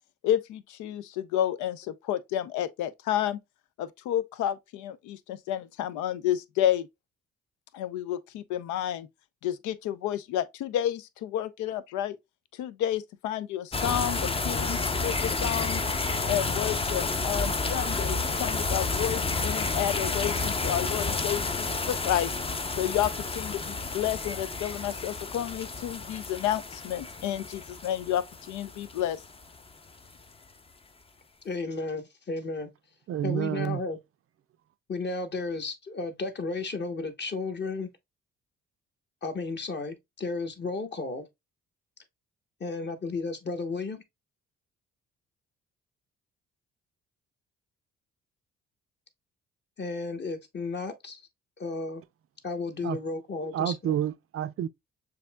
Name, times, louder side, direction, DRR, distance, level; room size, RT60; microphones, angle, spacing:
voice 1, 0.2-3.4 3.8-6.9 7.7-9.1 9.4-12.2 12.6-15.8 16.2-22.3 22.8-29.2, left 11 dB, 85° left, 0.5 m, -30 dB
sound 1, 13.7-29.6, left 3 dB, 20° left, 0.5 m, -30 dB
voice 2, 31.4-32.7 33.2-34.0 34.9-37.9 39.2-41.2 42.6-44.0 49.8-51.2 51.6-52.0 52.4-54.0, left 3 dB, 35° left, 1.0 m, -33 dB
voice 3, 33.1-33.8 52.8-53.0 53.5-54.7, right 10 dB, 50° right, 0.5 m, -29 dB
6.7 x 2.7 x 2.2 m
supercardioid pair, 70°, 29 cm